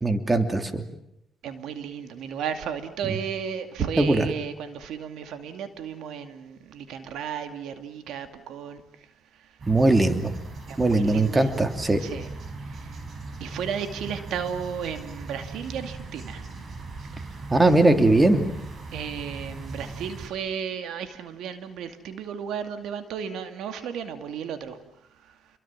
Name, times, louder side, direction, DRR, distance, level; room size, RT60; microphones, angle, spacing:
voice 1, 0.0-0.8 3.0-3.2 4.0-4.3 9.7-10.3 10.8-12.0 17.5-18.4, right 2 dB, 20° right, 8 dB, 2.9 m, -20 dB
voice 2, 1.4-8.8 10.7-11.5 12.0-12.3 12.7-12.8 13.4-16.4 18.9-24.8, right 7 dB, 80° right, 8 dB, 2.4 m, -34 dB
sound 1, 9.6-20.3, right 3 dB, 45° right, 5.4 m, -39 dB
29.5 x 23.0 x 7.5 m, 0.80 s
cardioid pair, 90°, 0 cm